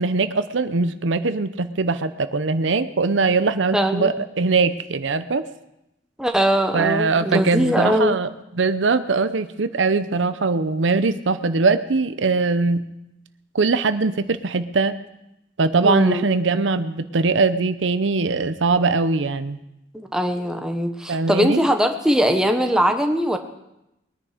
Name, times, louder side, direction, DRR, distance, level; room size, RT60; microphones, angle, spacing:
voice 1, 0.0-5.4 6.7-8.3 8.6-12.8 13.5-14.9 15.6-19.6 21.1-21.6, right 4 dB, 85° right, 12 dB, 0.7 m, -21 dB
voice 2, 3.7-4.1 6.2-8.1 15.8-16.3 19.9-23.4, equal, 5° right, 5 dB, 1.1 m, -21 dB
21.5 x 10.0 x 5.0 m, 0.87 s
head